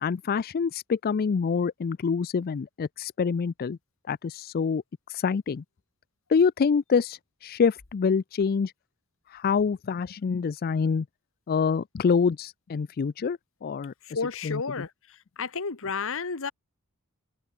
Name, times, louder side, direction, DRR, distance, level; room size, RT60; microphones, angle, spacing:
voice 1, 0.0-3.8 4.1-4.8 5.1-5.6 6.3-8.7 9.3-11.1 11.5-13.9 14.4-14.9, left 5 dB, 40° left, 0.4 m, -26 dB
voice 2, 14.0-14.9 15.4-16.5, left 5 dB, 65° left, 1.4 m, -31 dB
head